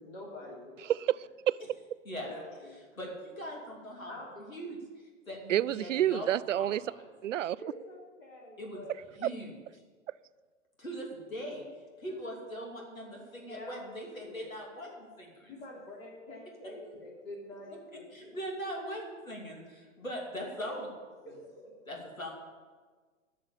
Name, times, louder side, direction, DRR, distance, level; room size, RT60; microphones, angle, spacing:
voice 1, 0.0-0.9 2.2-3.1 4.1-4.5 7.6-8.9 12.1-12.2 13.5-13.9 14.2-14.5 15.5-18.4 20.3-20.8 21.3-21.7, left 1 dB, 45° left, -3 dB, 3.4 m, -46 dB
voice 2, 0.8-1.6 5.5-6.8 7.2-7.6, right 12 dB, 70° right, 19 dB, 0.5 m, -29 dB
voice 3, 3.0-4.1 4.5-4.8 5.3-6.3 6.5-7.0 8.6-8.8 9.2-9.6 10.8-11.6 12.0-15.5 16.8-17.0 17.7-17.8 18.1-20.9 21.9-22.3, equal, 85° left, 0 dB, 2.9 m, -41 dB
12.5 x 6.5 x 8.6 m, 1.4 s
figure-of-eight pair, 110°, 40 cm